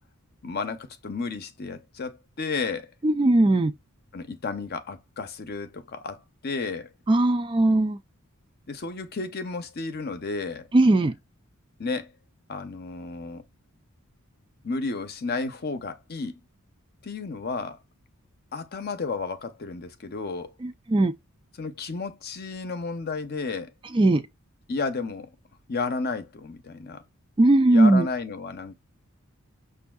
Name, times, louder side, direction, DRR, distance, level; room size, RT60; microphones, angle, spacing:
voice 1, 0.4-2.9 4.1-6.9 8.7-10.7 11.8-12.1 12.5-13.4 14.6-16.4 17.0-17.8 18.5-20.5 21.5-23.7 24.7-25.3 25.7-27.0 27.7-28.7, left 4 dB, 45° left, 0.6 m, -32 dB
voice 2, 3.0-3.7 7.1-8.0 10.7-11.1 20.6-21.1 23.9-24.2 27.4-28.1, right 2 dB, 25° right, 0.3 m, -19 dB
6.1 x 2.6 x 2.3 m
head